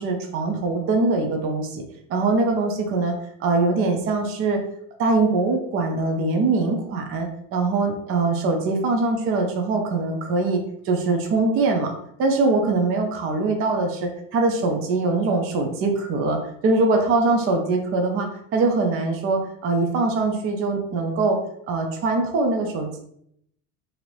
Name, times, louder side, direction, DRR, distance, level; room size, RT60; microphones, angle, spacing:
voice 1, 0.0-1.8 2.1-3.1 3.4-4.6 5.0-11.9 12.2-21.4 21.7-23.0, right 3 dB, 30° right, 3 dB, 0.5 m, -22 dB
2.7 x 2.6 x 3.1 m, 0.71 s
supercardioid pair, 125°, 43 cm